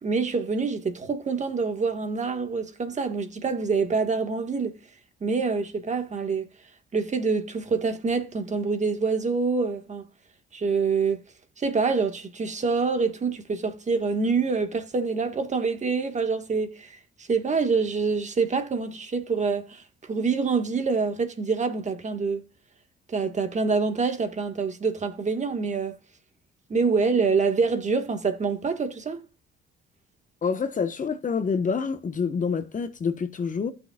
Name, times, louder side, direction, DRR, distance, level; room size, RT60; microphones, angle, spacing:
voice 1, 0.0-4.7 5.2-6.5 6.9-10.0 10.5-11.2 11.6-22.4 23.1-26.0 26.7-29.2, right 4 dB, 35° right, 1.6 m, -26 dB
voice 2, 30.4-33.7, left 5 dB, 40° left, 1.2 m, -27 dB
15.5 x 6.4 x 2.4 m
cardioid pair, 90°, 20 cm